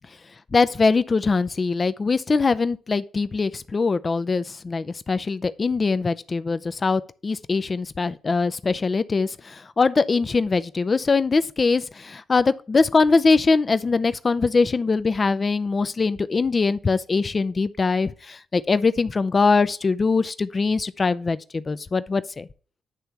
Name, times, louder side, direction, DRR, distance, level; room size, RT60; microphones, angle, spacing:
voice 1, 0.5-22.5, left 4 dB, 40° left, 0.5 m, -22 dB
9.8 x 3.4 x 5.7 m
hypercardioid pair, 45°, 0 cm